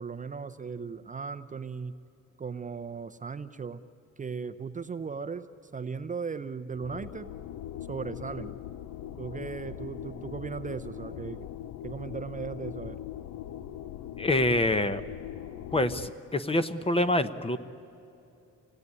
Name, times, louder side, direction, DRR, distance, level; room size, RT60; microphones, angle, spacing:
voice 1, 0.0-1.9 2.4-3.8 4.2-7.3 7.9-8.6 9.2-11.5 11.8-13.0, right 5 dB, 25° right, 10 dB, 0.6 m, -37 dB
sound 1, 6.7-16.1, left 11 dB, 70° left, 0.7 m, -41 dB
voice 2, 14.2-15.0 15.7-17.6, left 1 dB, 20° left, 12 dB, 0.8 m, -26 dB
27.0 x 18.0 x 9.6 m, 2.7 s
cardioid pair, 140°, 31 cm